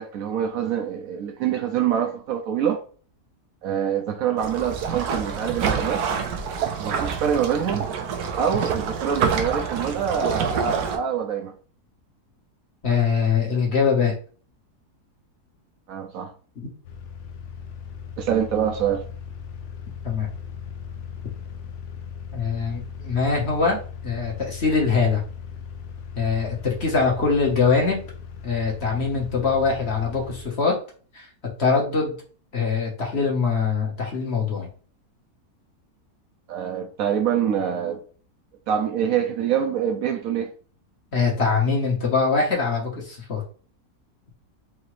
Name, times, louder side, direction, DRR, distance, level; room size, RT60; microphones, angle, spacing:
voice 1, 0.0-2.8 3.6-6.0 6.6-7.9 8.4-11.5 15.9-16.3 18.2-19.0 36.5-38.0 38.7-40.5, right 8 dB, 70° right, 1.0 m, -25 dB
sound 1, 4.4-11.0, right 6 dB, 85° right, 1.2 m, -27 dB
voice 2, 12.8-14.1 16.6-16.7 20.0-20.3 22.3-23.8 24.0-25.2 26.1-28.0 28.4-30.8 31.1-31.3 31.6-32.1 32.5-34.7 41.1-43.4, left 5 dB, 45° left, 1.2 m, -23 dB
sound 2, 16.8-30.4, left 7 dB, 60° left, 0.8 m, -38 dB
4.7 x 2.7 x 3.1 m
omnidirectional pair, 1.7 m